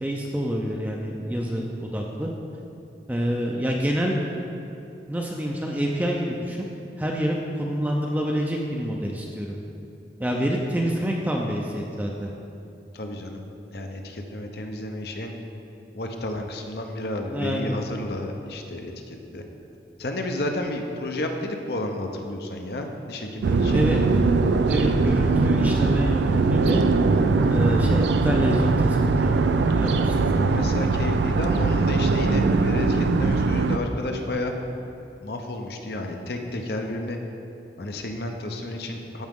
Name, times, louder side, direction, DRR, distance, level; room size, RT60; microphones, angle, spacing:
voice 1, 0.0-2.3 3.1-4.2 5.1-6.7 7.0-9.6 10.2-12.3 17.3-17.8 23.7-24.0 24.7-26.8 27.1-29.3 29.6-30.7, equal, 10° right, -1 dB, 0.5 m, -27 dB
voice 2, 12.9-13.4 13.7-15.3 15.9-19.4 20.0-23.8 29.9-30.0 30.3-34.5 35.2-37.2 37.8-39.3, left 1 dB, 65° left, 4 dB, 0.7 m, -31 dB
sound 1, 23.4-33.8, right 3 dB, 85° right, 0.4 m, -21 dB
13.5 x 5.0 x 3.6 m, 2.8 s
head